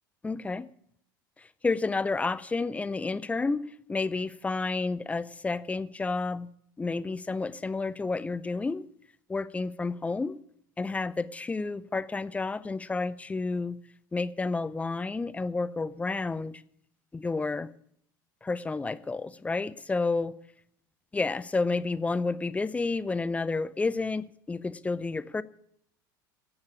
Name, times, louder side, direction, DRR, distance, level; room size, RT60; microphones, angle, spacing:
voice 1, 0.2-0.7 1.6-6.5 6.8-8.8 9.3-10.4 10.8-13.8 14.1-16.6 17.1-17.7 18.4-20.4 21.1-25.4, left 3 dB, 10° left, 0.5 m, -30 dB
9.7 x 8.1 x 8.3 m
figure-of-eight pair, 70°, 11 cm